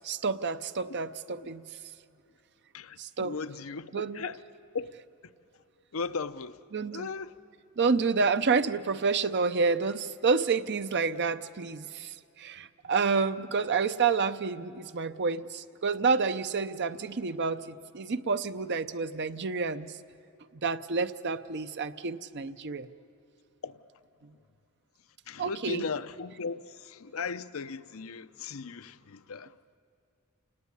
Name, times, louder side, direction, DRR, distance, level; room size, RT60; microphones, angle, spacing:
voice 1, 0.0-1.6 3.0-3.3 3.9-4.2 6.7-7.1 7.8-19.9 20.6-22.9 25.4-25.8, right 4 dB, 50° right, 0.7 m, -29 dB
voice 2, 2.7-4.4 4.7-4.9 5.9-6.6 6.9-7.4 12.6-12.7 23.6-23.8 24.3-24.4 25.3-29.6, left 4 dB, 70° left, 0.7 m, -37 dB
29.0 x 18.5 x 9.7 m
head